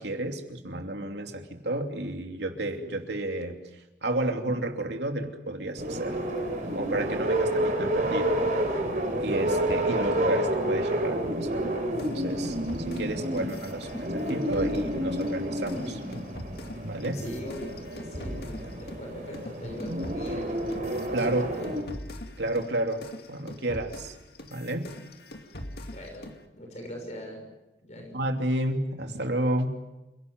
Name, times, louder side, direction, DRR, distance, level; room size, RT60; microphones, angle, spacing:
voice 1, 0.0-3.6 4.0-6.2 6.7-8.4 9.2-11.8 12.1-12.6 12.9-16.0 16.8-17.2 21.1-21.4 22.4-23.0 23.3-24.2 24.5-24.9 28.1-29.8, right 1 dB, 70° right, 4 dB, 2.9 m, -31 dB
sound 1, 5.8-21.8, right 1 dB, 45° right, 4.6 m, -29 dB
sound 2, 12.0-19.1 19.3-26.4, left 1 dB, 60° left, 2.3 m, -42 dB
voice 2, 17.1-20.4 21.2-21.7 25.9-26.3 26.5-27.4 27.8-28.2, equal, 40° left, 2 dB, 6.4 m, -41 dB
28.5 x 18.0 x 9.5 m, 1.0 s
head